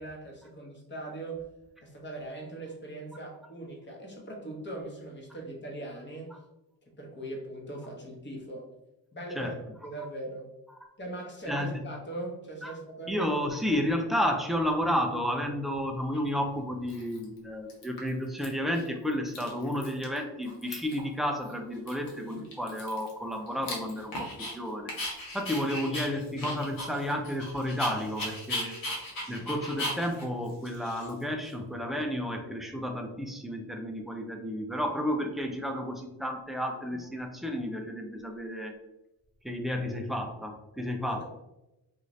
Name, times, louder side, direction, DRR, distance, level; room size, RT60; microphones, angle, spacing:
voice 1, 0.0-1.5 1.8-6.3 7.0-8.7 9.1-9.6 9.8-10.5 11.0-13.3 29.4-29.5 41.0-41.2, right 2 dB, 25° left, -1 dB, 0.9 m, -40 dB
voice 2, 11.5-11.8 12.6-12.7 13.1-24.9 25.3-28.8 29.3-38.7 39.4-41.2, equal, ahead, 3 dB, 0.3 m, -32 dB
Dog, 16.1-16.2 16.9-17.4 17.7-18.5 18.7-18.9 19.1-20.2 20.4-21.1 21.4-21.5 21.9-24.5 24.9-31.5, left 1 dB, 55° left, 1.0 m, -38 dB
2.5 x 2.5 x 3.1 m, 0.94 s
cardioid pair, 85°, 41 cm